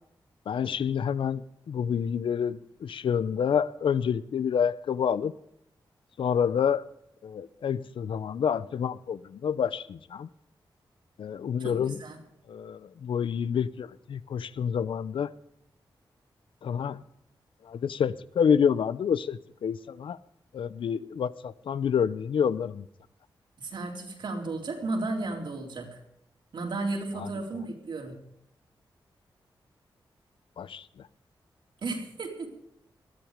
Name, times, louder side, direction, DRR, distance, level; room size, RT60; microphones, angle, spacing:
voice 1, 0.5-1.4 1.7-5.3 6.2-6.9 7.2-10.3 11.2-12.0 12.5-15.3 16.6-17.0 17.6-20.2 20.5-22.9 27.2-27.3 30.6-31.0, left 7 dB, 85° left, 17 dB, 0.7 m, -28 dB
voice 2, 11.6-12.2 23.6-26.0 26.5-28.2 31.8-32.6, right 2 dB, 70° right, 0 dB, 4.1 m, -34 dB
20.0 x 13.5 x 5.1 m, 0.76 s
wide cardioid pair, 105°, 9 cm